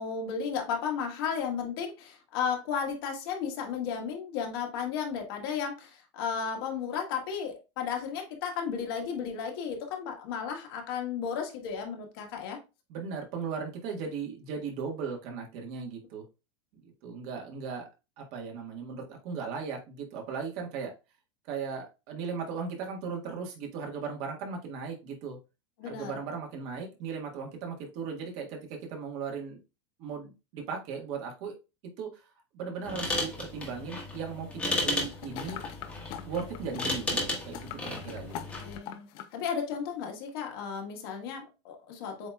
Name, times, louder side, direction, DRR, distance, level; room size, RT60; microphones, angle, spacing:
voice 1, 0.0-12.6 25.8-26.1 38.3-39.1 39.3-42.3, left 7 dB, 60° left, 1.4 m, -34 dB
voice 2, 12.9-16.2 16.7-17.9 18.2-20.9 21.5-25.4 25.8-29.6 30.0-31.5 32.0-32.2 32.5-35.6 36.2-38.3, right 5 dB, 45° right, 1.5 m, -37 dB
sound 1, 32.8-38.8, left 2 dB, 10° left, 1.2 m, -34 dB
sound 2, 34.7-39.4 39.7-39.8, left 10 dB, 35° left, 0.5 m, -43 dB
7.8 x 2.9 x 2.3 m
supercardioid pair, 165°, 14 cm